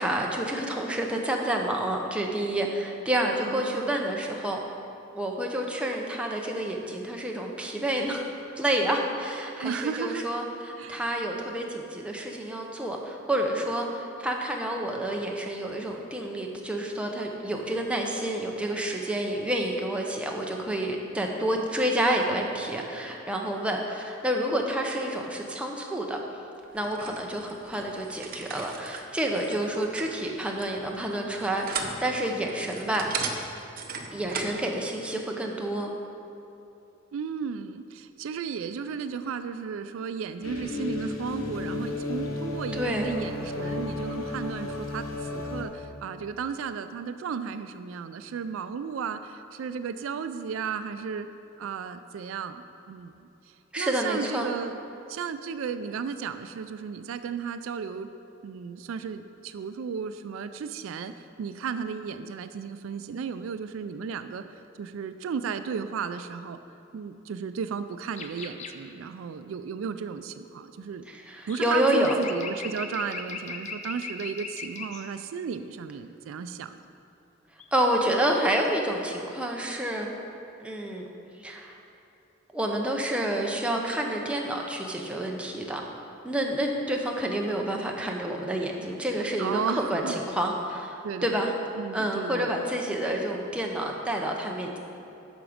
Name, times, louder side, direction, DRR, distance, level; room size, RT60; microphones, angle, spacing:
voice 1, 0.0-4.6 5.1-8.3 8.6-26.2 26.7-33.1 34.1-35.9 42.7-43.1 53.7-54.5 71.1-72.2 77.7-80.1 80.6-81.0 81.4-81.7 82.5-85.9 86.2-91.5 91.9-94.8, right 1 dB, 5° right, 0 dB, 0.7 m, -29 dB
voice 2, 3.4-4.2 9.5-10.2 10.8-11.0 37.1-51.3 51.6-54.8 55.1-58.1 58.4-66.6 66.9-71.0 71.5-76.8 89.4-90.2 91.0-92.6, right 6 dB, 75° right, 10 dB, 0.3 m, -34 dB
sound 1, 26.7-34.6, right 5 dB, 45° right, 0.7 m, -38 dB
sound 2, 40.4-45.6, left 2 dB, 85° left, 1.0 m, -33 dB
sound 3, 68.1-68.8 71.4-75.0 77.6-78.1 78.4-78.7, left 4 dB, 35° left, 0.5 m, -38 dB
8.8 x 6.0 x 5.0 m, 2.9 s
head